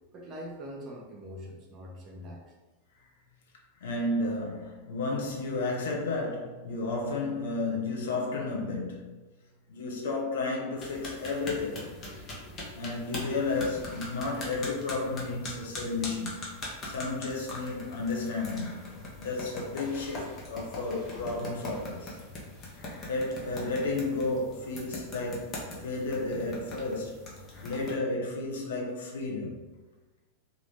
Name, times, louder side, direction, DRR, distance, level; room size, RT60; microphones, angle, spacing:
voice 1, 0.1-2.5, equal, 30° right, -1 dB, 0.7 m, -43 dB
voice 2, 3.8-9.1 9.7-12.0 12.7-16.5 16.8-18.9 19.2-22.2 23.1-27.2 27.6-29.7, left 3 dB, 60° left, -1 dB, 0.6 m, -32 dB
sound 1, 10.8-27.9, left 1 dB, 25° left, 0.8 m, -42 dB
3.0 x 2.4 x 3.3 m, 1.2 s
figure-of-eight pair, 90°, 0 cm